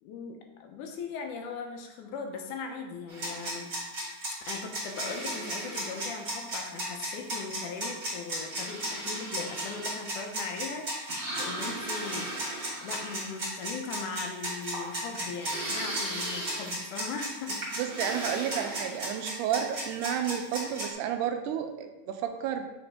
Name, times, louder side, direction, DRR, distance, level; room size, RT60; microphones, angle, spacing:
voice 1, 0.0-3.7 4.5-12.4 12.8-17.6, left 5 dB, 80° left, 3 dB, 2.2 m, -39 dB
sound 1, 3.1-20.9, right 1 dB, 35° right, 2.1 m, -34 dB
voice 2, 17.8-22.6, right 9 dB, 85° right, 6 dB, 2.1 m, -31 dB
7.1 x 3.9 x 3.4 m, 0.98 s
omnidirectional pair, 3.6 m